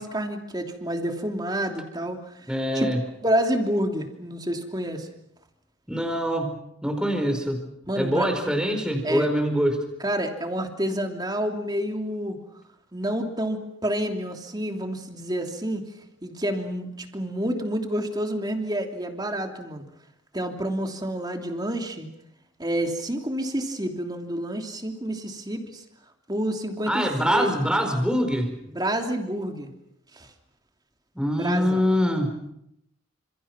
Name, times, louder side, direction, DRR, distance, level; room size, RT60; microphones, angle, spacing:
voice 1, 0.0-2.4 2.7-2.9 3.2-5.1 7.9-8.3 9.0-9.3 10.0-12.4 12.9-15.8 16.2-19.8 20.3-22.1 22.6-25.8 26.3-27.1 27.3-27.6 28.7-29.7 30.1-30.3 31.3-31.8, right 1 dB, 20° right, 4 dB, 3.0 m, -28 dB
voice 2, 2.5-3.0 5.9-6.6 6.8-7.6 7.9-9.8 26.9-28.5 31.1-32.4, equal, 5° right, 5 dB, 4.7 m, -24 dB
29.5 x 27.5 x 6.1 m, 0.80 s
head